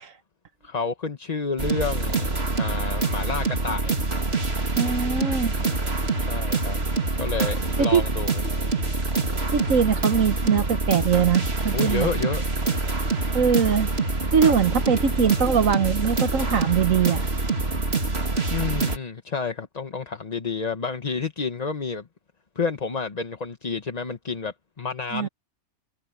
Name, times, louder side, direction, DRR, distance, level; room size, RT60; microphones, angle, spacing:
voice 1, 0.6-2.3 2.6-3.9 6.2-6.8 7.2-8.4 11.7-12.4 18.5-22.1 22.5-25.3, left 5 dB, 30° left, 1.0 m, -30 dB
sound 1, 1.6-19.0, right 3 dB, 40° right, 2.8 m, -25 dB
voice 2, 4.8-5.6 7.8-8.0 9.5-12.1 13.3-13.9 14.3-17.3 25.1-25.3, right 7 dB, 60° right, 1.3 m, -22 dB
omnidirectional pair, 1.6 m